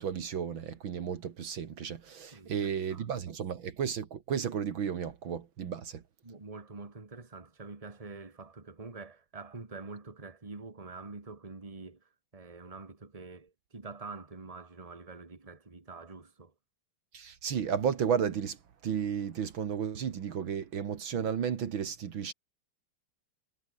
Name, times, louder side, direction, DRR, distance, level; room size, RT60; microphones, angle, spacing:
voice 1, 0.0-6.0 17.1-18.6 18.8-22.3, right 7 dB, 65° right, 2.3 m, -33 dB
voice 2, 2.3-3.1 6.2-16.5, right 3 dB, 15° right, 2.2 m, -46 dB
omnidirectional pair, 2.4 m